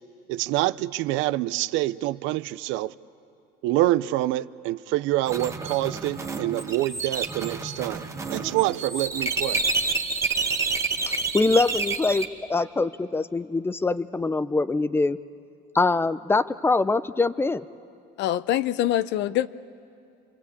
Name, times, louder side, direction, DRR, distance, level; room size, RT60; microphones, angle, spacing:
voice 1, 0.3-2.9 3.6-9.6, right 16 dB, 75° right, 0.6 m, -26 dB
sound 1, 5.3-12.2, right 3 dB, 15° right, 1.4 m, -29 dB
voice 2, 11.0-15.2 15.7-17.6, left 3 dB, 10° left, 0.6 m, -24 dB
voice 3, 18.2-19.5, left 12 dB, 60° left, 0.7 m, -24 dB
28.0 x 23.5 x 8.5 m
cardioid pair, 130°, 20 cm